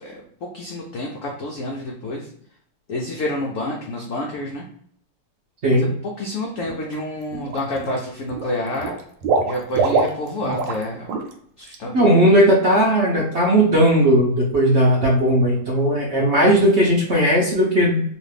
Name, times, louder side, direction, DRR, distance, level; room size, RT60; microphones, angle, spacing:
voice 1, 0.0-2.3 2.9-4.6 5.7-8.9 9.5-11.2 11.6-12.2, left 1 dB, 80° left, -1 dB, 0.7 m, -29 dB
Water / Liquid, 6.7-7.0 7.3-8.0 8.3-10.8 11.1-11.3 11.7-11.8, right 4 dB, 85° right, 1.3 m, -23 dB
voice 2, 11.9-18.0, right 1 dB, 55° right, -4 dB, 0.7 m, -17 dB
3.1 x 2.4 x 3.3 m, 0.64 s
omnidirectional pair, 2.0 m